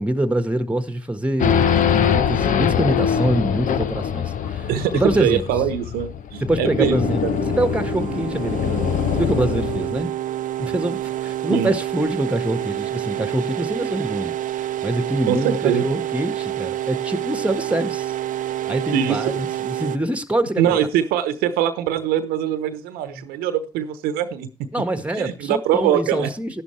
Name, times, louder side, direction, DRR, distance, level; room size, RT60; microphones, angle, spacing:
voice 1, 0.0-5.4 6.4-7.2 7.6-10.1 10.6-14.3 14.8-18.1 18.7-20.8 23.1-23.2 24.7-26.6, right 1 dB, 10° right, 1.6 m, -25 dB
Race car auto racing / Idling / Accelerating revving vroom, 1.4-10.0, left 8 dB, 55° left, 0.9 m, -23 dB
voice 2, 4.7-7.4 11.5-11.7 15.3-15.9 18.9-19.2 20.6-24.5 25.2-26.3, right 10 dB, 75° right, 1.0 m, -22 dB
sound 1, 6.9-20.0, right 13 dB, 55° right, 0.7 m, -28 dB
12.0 x 11.5 x 3.3 m
hypercardioid pair, 45°, 16 cm